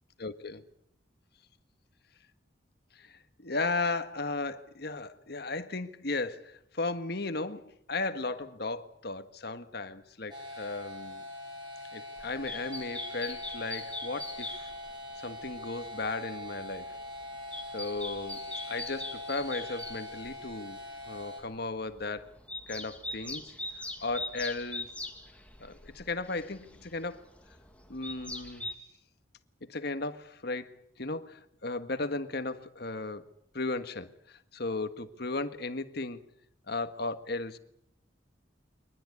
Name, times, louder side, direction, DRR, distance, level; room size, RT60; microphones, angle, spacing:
voice 1, 0.2-0.6 2.9-11.2 11.9-14.7 15.2-16.9 17.7-22.4 22.7-24.9 25.6-27.2 27.9-28.7 29.6-33.2 33.5-36.2 36.7-37.6, left 3 dB, 60° left, 10 dB, 1.6 m, -36 dB
sound 1, 10.3-21.4, left 1 dB, 25° right, 7.6 m, -42 dB
sound 2, 12.2-15.0 15.4-16.1 16.6-20.6 21.0-21.2 21.7-28.7, left 2 dB, 5° left, 2.5 m, -42 dB
24.0 x 19.5 x 9.6 m, 0.73 s
head